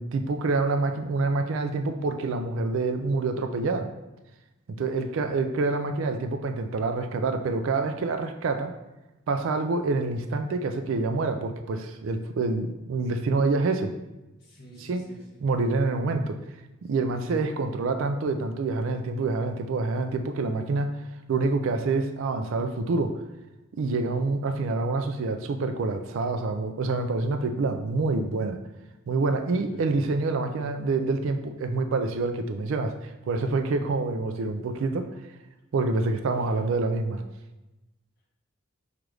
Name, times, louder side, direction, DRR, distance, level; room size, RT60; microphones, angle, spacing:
voice 1, 0.0-3.9 4.8-8.7 9.3-13.9 14.8-15.1 15.4-16.4 16.8-21.0 21.3-23.1 23.7-28.6 29.1-35.1 35.7-37.2, right 3 dB, 65° right, 6 dB, 0.3 m, -27 dB
voice 2, 4.8-5.2 13.3-13.5 14.4-15.4 16.9-17.1 24.0-24.2 29.5-29.8 36.3-36.6, right 1 dB, 50° left, -4 dB, 1.5 m, -49 dB
6.0 x 2.5 x 3.2 m, 1.0 s
head